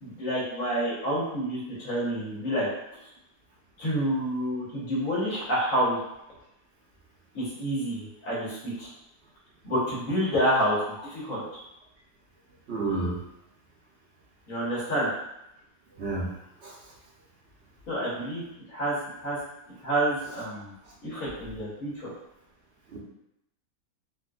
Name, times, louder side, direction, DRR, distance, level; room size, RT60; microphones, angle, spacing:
voice 1, 0.0-2.7 3.8-6.0 7.3-8.9 9.6-11.4 14.5-15.1 17.9-18.4 18.7-18.9 19.2-19.4 19.8-20.7 21.0-22.1, right 1 dB, 75° left, -8 dB, 1.5 m, -28 dB
voice 2, 12.7-13.2 16.0-16.3 16.6-16.8 22.9-23.0, right 3 dB, 60° right, -3 dB, 0.9 m, -30 dB
3.7 x 2.6 x 2.3 m, 0.85 s
omnidirectional pair, 1.4 m